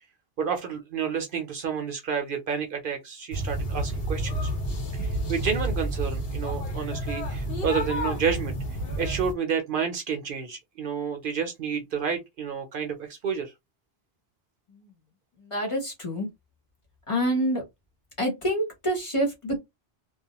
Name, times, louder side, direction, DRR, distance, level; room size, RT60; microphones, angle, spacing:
voice 1, 0.4-4.5 4.9-8.6 9.0-13.5, right 6 dB, 60° right, 0.7 m, -30 dB
sound 1, 3.3-9.3, right 1 dB, 65° left, 1.0 m, -30 dB
voice 2, 15.4-16.3 17.1-17.6 18.2-19.6, equal, 30° left, 1.0 m, -27 dB
2.3 x 2.1 x 2.8 m
omnidirectional pair, 1.1 m